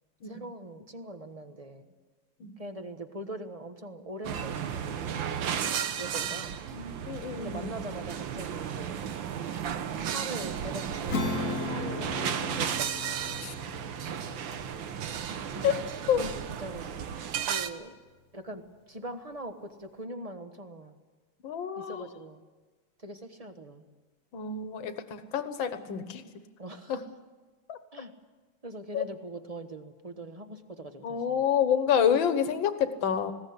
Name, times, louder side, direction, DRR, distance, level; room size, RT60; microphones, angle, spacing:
voice 1, 0.2-1.9 2.6-5.3 6.0-6.5 7.4-9.1 10.1-13.2 15.5-15.7 16.2-16.9 17.4-18.0 18.3-21.0 21.8-22.4 23.0-23.8 26.6-27.0 27.9-28.1 28.6-31.4, right 1 dB, 25° right, 7 dB, 1.1 m, -42 dB
sound 1, 4.2-17.7, right 8 dB, 75° right, 1.7 m, -34 dB
voice 2, 6.7-7.7 13.4-13.5 15.6-16.2 21.4-22.1 24.3-26.2 26.9-27.0 27.7-27.8 28.9-29.0 31.0-33.3, left 8 dB, 75° left, 10 dB, 2.0 m, -28 dB
Acoustic guitar / Strum, 11.1-17.1, left 4 dB, 50° left, 1.2 m, -38 dB
20.0 x 17.0 x 9.6 m, 1.3 s
omnidirectional pair, 2.1 m